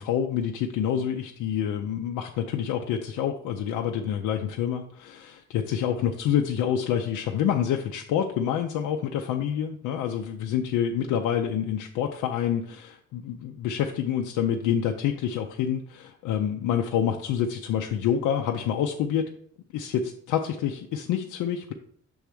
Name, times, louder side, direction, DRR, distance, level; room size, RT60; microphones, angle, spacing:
voice 1, 0.0-19.3 19.7-21.7, left 9 dB, 90° left, 3 dB, 0.6 m, -27 dB
6.2 x 3.5 x 5.9 m, 0.64 s
cardioid pair, 90°, 30 cm